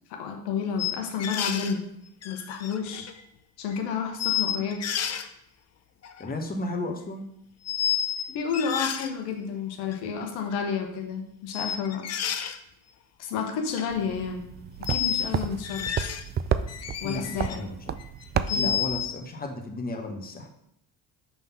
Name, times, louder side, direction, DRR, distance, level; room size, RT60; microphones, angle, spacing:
voice 1, 0.1-1.8 2.2-3.1 3.6-4.8 8.3-12.1 13.2-14.5 14.9-15.9 17.0-17.7 18.3-18.7, left 6 dB, 75° left, 3 dB, 1.2 m, -31 dB
sound 1, 0.8-1.8 2.2-3.2 3.7-3.8 4.2-5.3 6.0-6.4 7.7-8.2 8.5-9.1 9.9-10.0 11.5-12.6 13.5-13.9 14.9-15.3 15.6-16.3 16.7-17.6 18.0-19.1, left 9 dB, 40° left, 0.7 m, -30 dB
voice 2, 6.2-7.3 17.0-18.0 18.5-20.5, left 2 dB, 20° left, 3 dB, 1.2 m, -34 dB
sound 2, 13.9-19.1, right 8 dB, 25° right, 0.3 m, -32 dB
5.9 x 3.6 x 5.7 m, 0.74 s
supercardioid pair, 75°, 40 cm